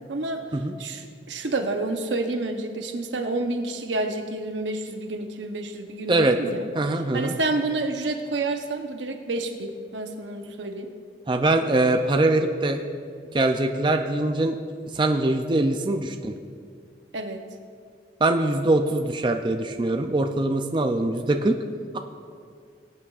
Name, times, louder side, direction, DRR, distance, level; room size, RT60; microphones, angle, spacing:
voice 1, 0.1-0.4 0.8-10.9 17.1-17.4, right 2 dB, 90° right, 5 dB, 0.9 m, -29 dB
voice 2, 6.8-7.3 11.3-12.8 13.3-14.5 14.9-16.4 18.2-21.6, right 2 dB, 25° right, 5 dB, 0.4 m, -22 dB
20.0 x 8.4 x 2.5 m, 2.2 s
head